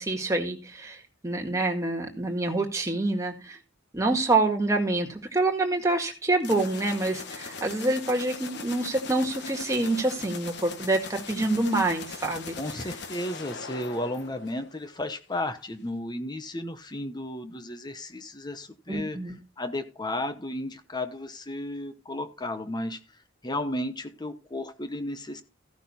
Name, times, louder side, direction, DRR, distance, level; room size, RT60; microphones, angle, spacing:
voice 1, 0.0-3.6 3.9-12.6 18.9-19.4, right 2 dB, 15° right, 1.8 m, -26 dB
sound 1, 6.4-15.0, left 5 dB, 60° left, 1.2 m, -40 dB
voice 2, 12.6-19.2 19.6-23.0 23.4-25.4, left 1 dB, 20° left, 1.0 m, -33 dB
14.5 x 6.0 x 4.2 m
head